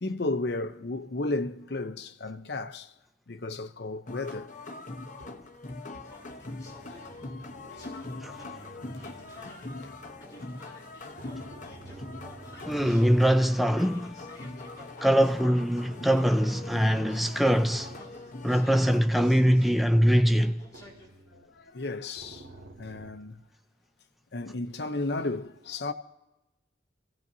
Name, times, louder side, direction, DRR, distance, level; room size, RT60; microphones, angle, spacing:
voice 1, 0.0-2.9 3.3-4.5 5.2-5.3 7.7-8.2 8.5-9.9 10.4-10.5 11.1-11.2 12.6-12.7 20.1-20.2 21.3-22.5 22.8-23.4 24.3-25.9, left 2 dB, 65° left, 0.8 m, -34 dB
sound 1, 4.1-19.0, left 2 dB, 45° left, 1.0 m, -42 dB
sound 2, 5.2-5.4 6.1-10.0 11.1-14.2 15.2-19.2 19.6-19.7 20.7-21.6 22.2-23.1, right 2 dB, 70° right, 2.2 m, -51 dB
sound 3, 5.9-21.1, left 1 dB, 20° left, 5.4 m, -51 dB
voice 2, 12.7-14.2 15.0-17.9 18.4-20.6, equal, ahead, 0.4 m, -23 dB
30.0 x 16.5 x 2.7 m
head